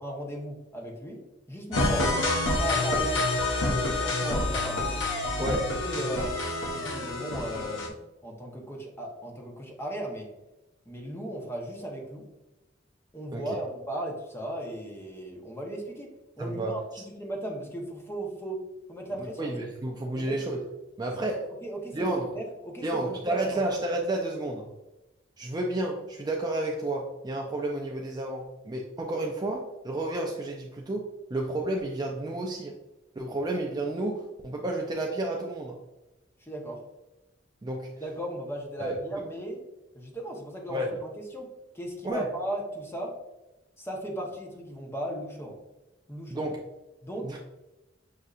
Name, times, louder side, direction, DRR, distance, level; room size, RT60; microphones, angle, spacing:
voice 1, 0.0-1.2 1.5-2.1 2.6-3.2 3.6-4.9 5.2-5.6 5.8-6.4 6.7-8.0 8.2-10.3 10.9-12.3 13.1-18.6 18.9-19.6 20.1-20.4 21.6-23.6 36.4-36.8 38.0-39.6 39.9-43.1 43.8-45.6 46.1-46.5 47.0-47.4, right 1 dB, 15° left, 0 dB, 0.8 m, -36 dB
sound 1, 1.7-7.9, left 2 dB, 75° left, 0.7 m, -28 dB
voice 2, 5.4-5.7 13.3-13.4 16.4-16.8 19.1-20.6 21.0-21.5 21.9-22.3 22.8-24.7 25.4-32.7 33.2-35.8 37.6-37.9 38.8-39.0 40.7-41.0 42.0-42.3 46.3-46.6 47.2-47.4, right 2 dB, 20° right, 0 dB, 0.4 m, -31 dB
6.5 x 2.6 x 2.4 m, 1.0 s
head